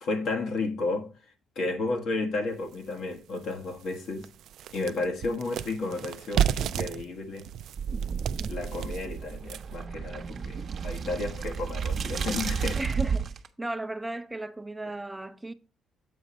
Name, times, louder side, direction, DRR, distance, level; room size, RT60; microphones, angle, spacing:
voice 1, 0.0-1.1 1.5-4.3 4.7-7.5 8.5-12.8, left 3 dB, 70° left, 1.4 m, -32 dB
sound 1, 2.7-2.8 3.3-3.4 3.8-9.8, right 10 dB, 80° right, 0.3 m, -32 dB
sound 2, 7.8-13.5, right 6 dB, 55° right, 0.8 m, -32 dB
voice 2, 12.8-13.3 13.6-15.5, right 2 dB, 10° right, 0.5 m, -35 dB
7.7 x 5.0 x 4.2 m
cardioid pair, 90°, 0 cm